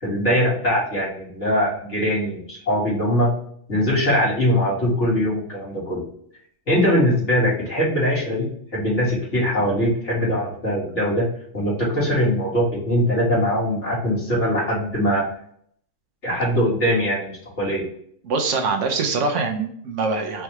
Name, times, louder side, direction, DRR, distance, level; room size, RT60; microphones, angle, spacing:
voice 1, 0.0-3.3 3.7-6.0 6.7-11.3 11.5-15.2 16.2-17.3 17.6-17.8, equal, 60° left, -7 dB, 2.4 m, -21 dB
voice 2, 18.2-20.4, right 4 dB, 65° right, 4 dB, 1.1 m, -23 dB
4.6 x 3.4 x 3.0 m, 0.66 s
omnidirectional pair, 1.4 m